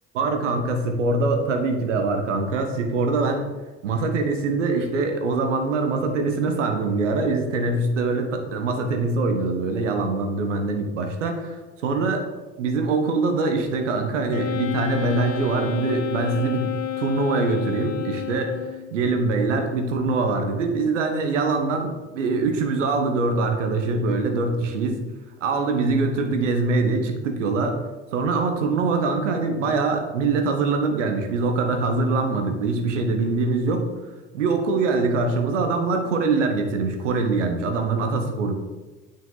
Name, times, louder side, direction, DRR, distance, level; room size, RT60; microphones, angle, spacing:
voice 1, 0.1-3.4 3.8-12.3 12.6-18.5 18.9-25.0 25.4-27.8 28.1-33.9 34.3-38.6, right 3 dB, 85° right, 4 dB, 1.1 m, -23 dB
Wind instrument woodwind instrument, 14.3-18.9, left 8 dB, 45° left, 0.8 m, -30 dB
9.1 x 5.3 x 3.9 m, 1.2 s
hypercardioid pair, 60°, 36 cm